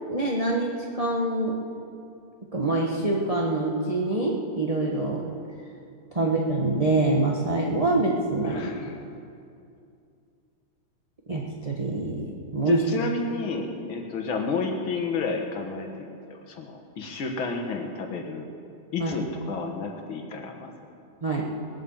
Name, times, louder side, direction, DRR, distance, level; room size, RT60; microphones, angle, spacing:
voice 1, 0.1-1.5 2.5-5.3 6.1-8.6 11.3-12.8 19.0-19.2 21.2-21.5, right 2 dB, 20° right, -2 dB, 1.2 m, -25 dB
voice 2, 8.4-9.0 12.6-18.5 18.9-20.7, left 4 dB, 70° left, 3 dB, 2.3 m, -31 dB
20.5 x 9.0 x 7.3 m, 2.5 s
omnidirectional pair, 2.3 m